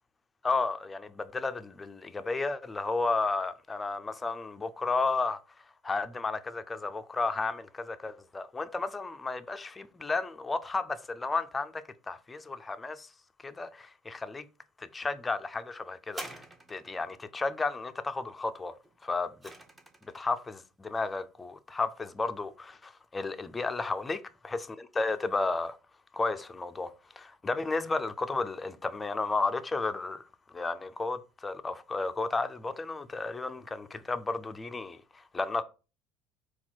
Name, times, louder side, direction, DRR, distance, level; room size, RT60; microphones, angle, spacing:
voice 1, 0.4-5.4 5.8-13.1 13.4-14.5 14.8-16.4 16.7-18.7 19.0-19.3 20.1-24.2 25.0-25.8 26.1-30.2 30.5-35.6, left 3 dB, 20° left, 0.4 m, -33 dB
sound 1, 16.1-17.1 18.8-20.2 21.0-21.1, right 1 dB, 15° right, 0.9 m, -45 dB
4.1 x 2.3 x 4.2 m
hypercardioid pair, 70°, 0 cm